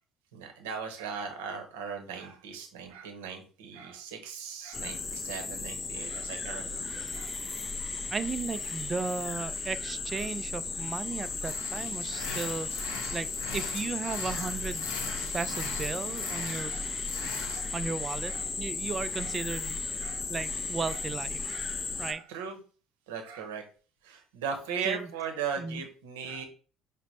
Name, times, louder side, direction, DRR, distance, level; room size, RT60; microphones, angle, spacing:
voice 1, 0.3-7.3 14.0-14.5 15.1-15.2 16.6-16.9 17.4-17.7 18.3-18.5 19.2-19.3 20.0-20.2 20.9-21.0 21.4-21.7 22.0-22.6 23.1-23.6 24.0-26.4, right 6 dB, 70° right, 4 dB, 0.8 m, -38 dB
sound 1, 4.7-22.1, left 4 dB, 25° left, 0.5 m, -35 dB
voice 2, 8.1-14.9 15.3-16.8 17.7-21.5 22.0-22.2 24.9-25.1 25.6-25.8, right 4 dB, 30° right, 14 dB, 0.3 m, -35 dB
sound 2, 11.4-17.6, left 4 dB, 70° left, 0.7 m, -41 dB
5.0 x 2.1 x 4.1 m, 0.39 s
figure-of-eight pair, 60°, 0 cm